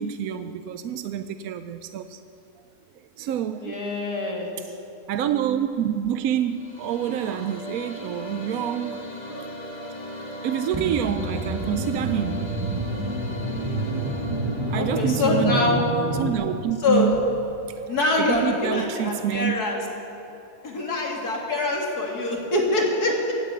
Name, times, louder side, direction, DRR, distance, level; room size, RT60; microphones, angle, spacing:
voice 1, 0.0-2.2 3.2-3.8 4.6-4.7 5.1-12.4 14.7-15.9 16.2-17.2 18.2-19.6, right 10 dB, 75° right, 10 dB, 1.0 m, -27 dB
voice 2, 3.6-4.5 14.7-15.8 16.8-17.1 17.9-19.8 20.6-23.3, left 2 dB, 75° left, -1 dB, 3.1 m, -24 dB
sound 1, 6.3-16.6, equal, 25° left, 2.0 m, -38 dB
sound 2, 10.7-16.3, right 1 dB, 20° right, 0.9 m, -28 dB
17.0 x 9.7 x 8.2 m, 2.9 s
omnidirectional pair, 1.7 m